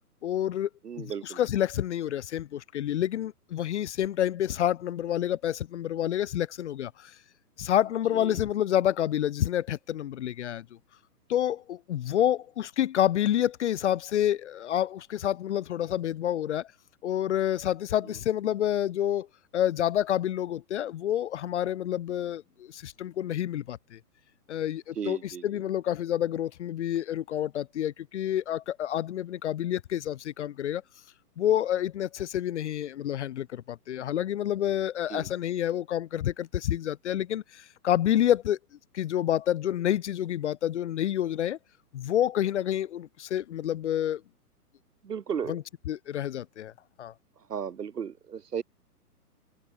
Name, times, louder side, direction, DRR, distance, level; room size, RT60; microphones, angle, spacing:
voice 1, 0.2-0.7 1.0-7.1 7.6-10.7 11.3-16.7 17.0-19.3 19.5-22.4 22.7-24.0 24.5-30.8 31.4-38.6 38.9-41.6 41.9-44.2 45.5-46.7 47.0-47.1, left 11 dB, 45° left, 0.7 m, -28 dB
voice 2, 0.8-1.4 8.1-8.4 24.9-25.5 35.1-35.3 45.0-45.6 47.5-48.6, right 7 dB, 75° right, 3.4 m, -35 dB
hypercardioid pair, 145°, 47 cm